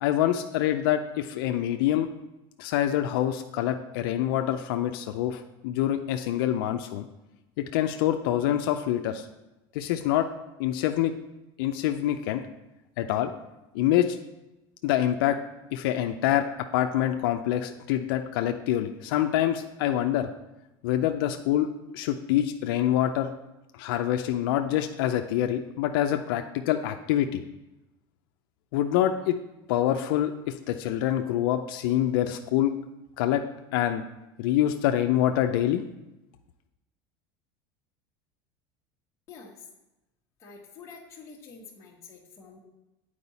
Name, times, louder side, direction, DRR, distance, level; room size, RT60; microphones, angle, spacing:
voice 1, 0.0-2.1 2.6-7.1 7.6-9.3 9.7-10.3 10.6-11.1 11.6-12.4 13.0-13.3 13.7-14.2 14.8-15.4 15.7-20.3 20.8-21.7 21.9-23.3 23.8-27.4 28.7-29.4 29.7-32.7 33.2-33.4 33.7-34.0 34.4-35.8, left 12 dB, 85° left, 6 dB, 0.5 m, -26 dB
voice 2, 39.3-39.7 40.4-42.6, left 5 dB, 25° left, -4 dB, 1.1 m, -47 dB
8.6 x 4.7 x 4.1 m, 0.97 s
cardioid pair, 145°, 12 cm